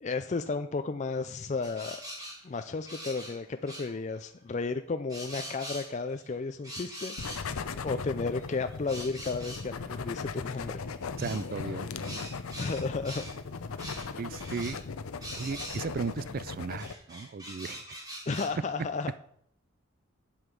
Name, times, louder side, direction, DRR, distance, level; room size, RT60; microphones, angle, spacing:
voice 1, 0.0-2.0 2.4-7.5 7.8-10.9 12.6-13.2 13.9-14.1 18.3-19.1, left 4 dB, 35° left, 8 dB, 0.4 m, -33 dB
sound 1, 1.6-3.4 3.7-3.9 5.1-6.2 6.6-7.5 8.4-9.7 11.2-11.4 12.0-13.4 13.8-14.1 14.4-14.8 15.2-16.1 16.8-18.5, equal, 20° right, 3.0 m, -42 dB
sound 2, 7.2-16.9, left 4 dB, 85° left, 0.6 m, -38 dB
voice 2, 11.2-12.7 14.2-14.8 15.4-18.0, right 5 dB, 45° right, 17 dB, 0.3 m, -36 dB
8.0 x 7.8 x 5.2 m, 0.69 s
head